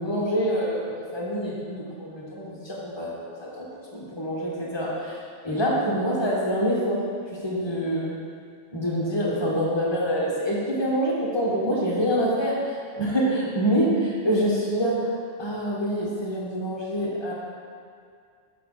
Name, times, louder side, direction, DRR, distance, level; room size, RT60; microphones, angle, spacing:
voice 1, 0.0-3.1 3.4-3.7 3.9-7.0 7.4-8.1 8.7-12.5 12.9-14.9 15.4-17.3, equal, 25° left, -6 dB, 1.2 m, -26 dB
6.7 x 4.6 x 3.8 m, 2.2 s
omnidirectional pair, 1.2 m